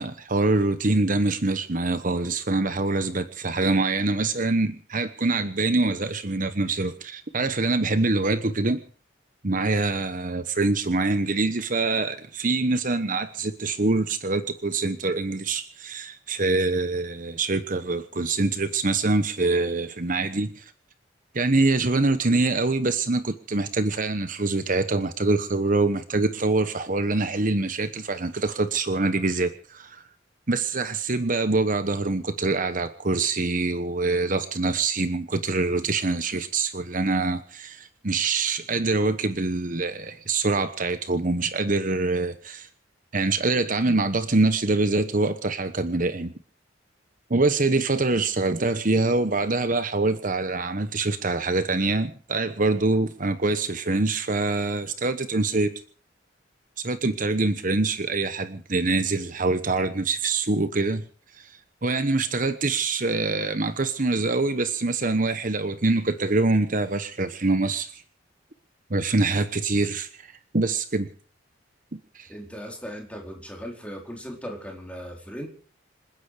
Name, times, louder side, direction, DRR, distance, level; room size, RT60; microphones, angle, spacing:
voice 1, 0.0-8.8 9.4-20.7 21.3-30.0 30.5-42.7 43.1-46.3 47.3-55.7 56.8-61.0 61.4-61.5 61.8-68.0 68.9-71.1 71.9-72.3, right 3 dB, 45° right, 10 dB, 1.1 m, -25 dB
voice 2, 72.3-75.5, equal, 5° left, 1 dB, 4.3 m, -38 dB
27.5 x 10.0 x 5.0 m, 0.43 s
head